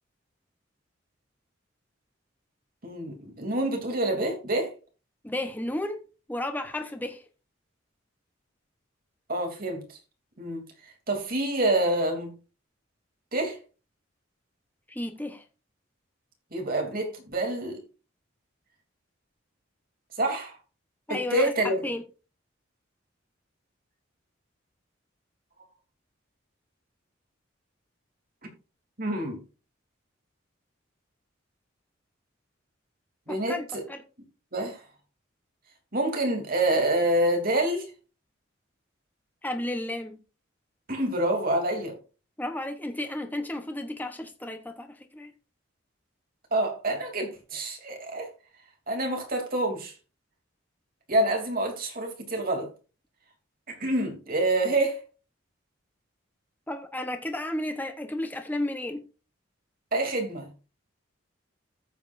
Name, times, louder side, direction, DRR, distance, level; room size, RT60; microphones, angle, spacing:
voice 1, 2.8-4.7 9.3-10.0 10.4-10.6 11.1-12.3 13.3-13.6 16.5-17.8 20.2-20.6 21.1-21.8 29.0-29.4 33.3-33.8 34.5-34.8 35.9-37.9 40.9-41.9 46.5-48.3 48.9-49.9 51.1-52.7 53.7-55.0 59.9-60.5, right 1 dB, 45° right, 3.1 m, -27 dB
voice 2, 5.2-6.0 6.3-7.2 14.9-15.4 21.1-22.0 33.3-34.0 39.4-40.2 42.4-45.3 56.7-59.0, left 1 dB, 10° left, 1.0 m, -33 dB
14.5 x 7.3 x 2.6 m
head